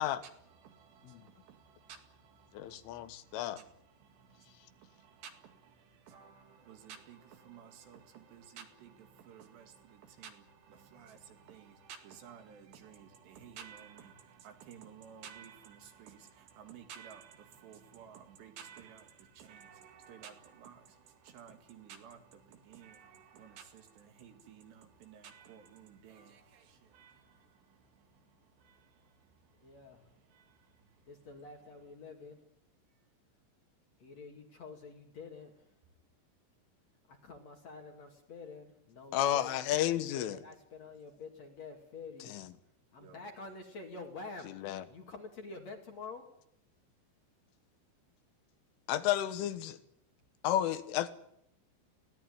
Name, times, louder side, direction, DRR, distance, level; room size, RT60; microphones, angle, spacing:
voice 1, 0.0-31.3 42.9-43.3, right 8 dB, 65° right, 4.1 m, -54 dB
voice 2, 2.5-3.6 39.1-40.4 42.3-42.5 44.6-44.8 48.9-49.8 50.4-51.1, left 12 dB, 85° left, 3.8 m, -32 dB
voice 3, 29.6-30.1 31.1-32.4 34.0-35.7 37.1-39.7 39.9-42.4 42.9-44.5 44.9-46.3, left 4 dB, 45° left, 2.6 m, -48 dB
21.0 x 17.5 x 9.6 m
omnidirectional pair, 5.5 m